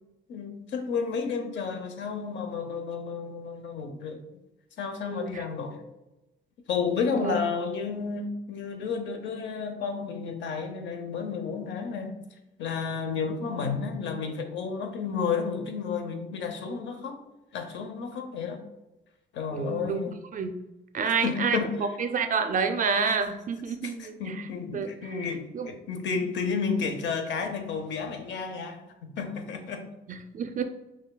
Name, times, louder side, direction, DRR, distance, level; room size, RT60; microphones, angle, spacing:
voice 1, 0.3-4.2 4.8-5.8 6.7-12.1 12.6-17.2 17.5-18.6 19.3-20.1 21.1-21.7 23.8-29.9, left 5 dB, 65° left, 5 dB, 0.7 m, -31 dB
voice 2, 5.1-5.4 7.2-7.3 19.5-20.0 20.3-20.5 20.9-24.4 24.7-24.9 25.5-25.7 30.1-30.6, right 5 dB, 40° right, 8 dB, 0.4 m, -29 dB
6.1 x 2.2 x 2.2 m, 0.97 s
cardioid pair, 90°, 20 cm